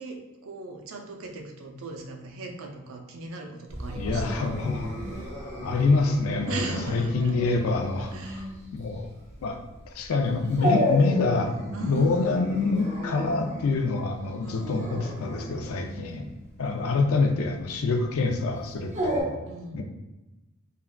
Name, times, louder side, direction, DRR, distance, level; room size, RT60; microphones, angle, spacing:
voice 1, 0.0-4.5 5.0-5.3 6.5-7.3 8.1-8.5 11.7-12.5 14.4-15.2 15.8-16.3 19.5-19.8, right 3 dB, 70° right, 2 dB, 0.4 m, -38 dB
Dog, 3.7-19.2, equal, 35° right, 0.7 m, -34 dB
voice 2, 4.0-4.9 5.6-8.5 8.7-9.1 9.4-9.6 9.9-11.6 11.8-16.2 16.6-19.4 19.7-19.8, left 3 dB, 80° left, 4 dB, 0.4 m, -26 dB
3.6 x 2.2 x 2.2 m, 1.0 s
head